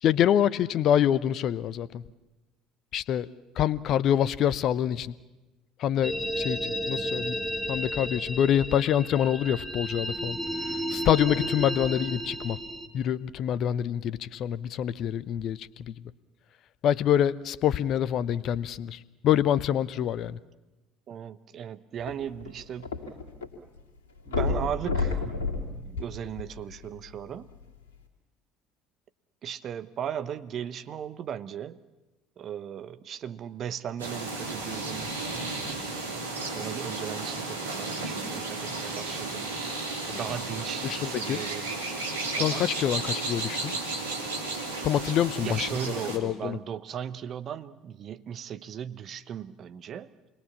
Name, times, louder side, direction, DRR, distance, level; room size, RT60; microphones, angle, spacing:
voice 1, 0.0-2.0 2.9-3.3 3.6-5.1 5.8-7.4 7.7-10.4 10.9-12.6 12.9-16.0 16.8-20.4 40.1-40.2 40.8-41.4 42.4-43.7 44.8-46.6, left 10 dB, 45° left, 18 dB, 0.8 m, -26 dB
sound 1, 6.0-12.9, equal, 5° right, 2.4 m, -33 dB
voice 2, 21.1-22.9 24.3-25.3 25.7-27.5 29.4-31.8 32.4-35.1 36.5-39.6 40.1-41.8 42.4-42.7 45.4-50.1, right 9 dB, 40° right, 12 dB, 1.0 m, -37 dB
sound 2, 22.0-23.5 23.8-23.9 24.3-26.8 27.5-27.6, left 3 dB, 70° left, 2.7 m, -30 dB
sound 3, 34.0-46.2, right 3 dB, 75° right, 3.0 m, -33 dB
28.0 x 21.5 x 7.3 m, 1.1 s
figure-of-eight pair, 60°, 0 cm